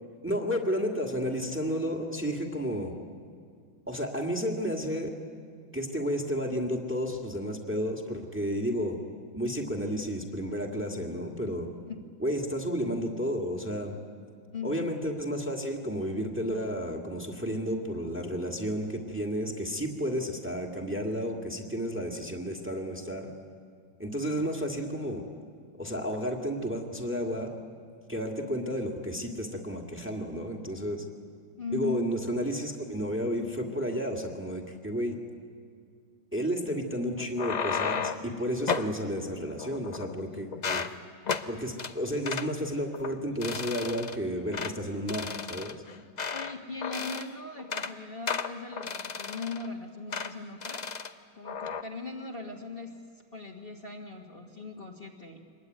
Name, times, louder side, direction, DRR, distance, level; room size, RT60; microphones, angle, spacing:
voice 1, 0.2-2.9 3.9-5.1 5.7-9.0 9.3-11.7 12.2-13.9 14.6-23.3 24.0-25.2 25.8-27.5 28.1-31.0 31.7-35.2 36.3-40.8 41.5-45.7, equal, 5° right, 2 dB, 2.0 m, -32 dB
voice 2, 14.5-14.9 31.6-32.1 46.3-50.8 51.3-53.0 53.3-55.4, left 4 dB, 30° left, -1 dB, 1.7 m, -39 dB
sound 1, 37.2-38.3 38.7-38.9 39.6-40.2 40.5-40.9 41.3-41.5 41.8-41.9 42.3-42.5 42.9-43.1 43.4-44.2 44.5-44.7 45.1-46.5 46.8-47.3 47.6-47.9 48.3-49.7 50.1-50.3 50.6-51.1 51.5-51.8, left 5 dB, 85° left, 0.3 m, -33 dB
24.5 x 21.0 x 9.5 m, 2.1 s
omnidirectional pair, 2.0 m